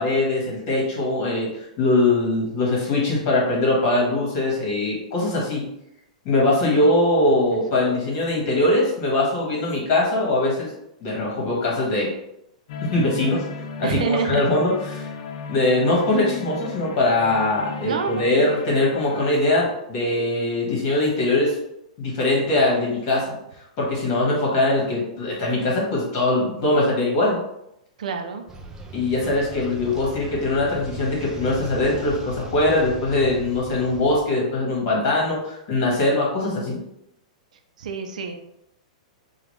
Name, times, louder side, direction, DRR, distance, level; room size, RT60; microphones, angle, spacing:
voice 1, 0.0-5.7 6.2-10.7 11.0-12.1 12.8-13.4 13.8-15.1 15.5-21.5 22.0-23.3 23.8-27.4 28.9-36.8, left 2 dB, 35° left, -3 dB, 1.4 m, -22 dB
voice 2, 6.7-7.9 13.8-14.4 17.8-18.3 28.0-28.4 37.8-38.4, right 5 dB, 75° right, 6 dB, 0.5 m, -28 dB
sound 1, 12.7-19.3, left 4 dB, 55° left, 0.5 m, -35 dB
sound 2, 28.5-34.2, right 2 dB, 10° right, 0.4 m, -39 dB
5.0 x 2.4 x 3.2 m, 0.81 s
supercardioid pair, 170°, 4 cm